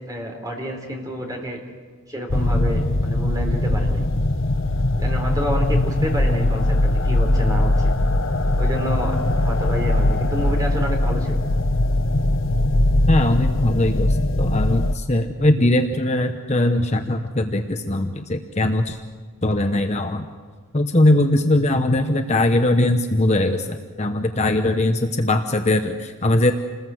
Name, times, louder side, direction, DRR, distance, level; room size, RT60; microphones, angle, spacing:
voice 1, 0.1-1.6 2.1-4.0 5.0-7.9 8.5-11.4, equal, 15° right, 2 dB, 3.9 m, -29 dB
sound 1, 2.3-15.0, left 1 dB, 65° left, 1.0 m, -20 dB
voice 2, 13.1-19.0 19.4-20.3 20.7-26.5, left 1 dB, 30° left, 6 dB, 1.0 m, -20 dB
28.5 x 20.5 x 7.8 m, 1.5 s
head